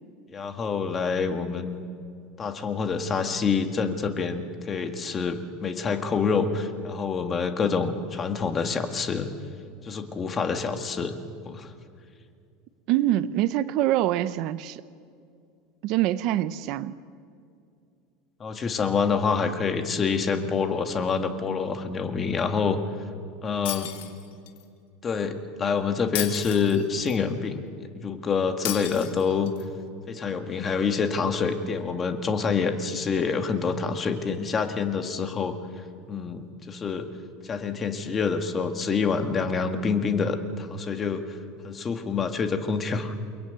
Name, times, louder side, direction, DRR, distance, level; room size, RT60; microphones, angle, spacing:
voice 1, 0.3-1.8 2.4-9.3 9.8-11.2 11.5-11.7 18.4-22.8 23.4-23.9 25.0-27.6 28.0-29.5 30.1-35.6 36.1-37.1 37.4-41.2 41.6-43.1, left 5 dB, 20° left, 6 dB, 1.8 m, -27 dB
voice 2, 12.9-14.8 15.8-17.0, right 13 dB, 50° right, 14 dB, 0.7 m, -25 dB
Shatter, 23.7-24.6 26.2-27.2 28.7-29.6, left 12 dB, 75° left, 3.3 m, -34 dB
29.5 x 22.0 x 9.3 m, 2.4 s
supercardioid pair, 160°, 0 cm